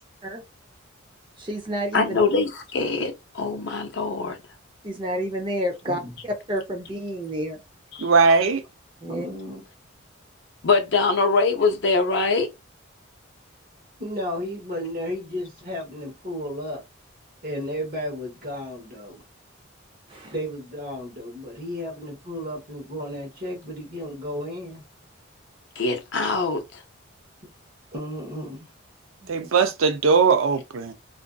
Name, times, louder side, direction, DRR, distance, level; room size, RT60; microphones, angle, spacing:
voice 1, 1.4-2.2 4.8-7.6 9.0-9.3 20.1-20.3 29.2-29.5, equal, 25° right, 0.6 m, -30 dB
voice 2, 1.9-4.4 8.0-8.1 10.6-12.5 25.8-26.8, left 4 dB, 55° left, 0.6 m, -23 dB
voice 3, 8.0-8.6 29.3-30.9, right 5 dB, 75° right, 0.5 m, -19 dB
voice 4, 9.1-9.6 14.0-16.8 17.4-19.2 20.3-24.8 27.9-28.7, equal, 45° right, 1.0 m, -33 dB
2.5 x 2.4 x 2.2 m
head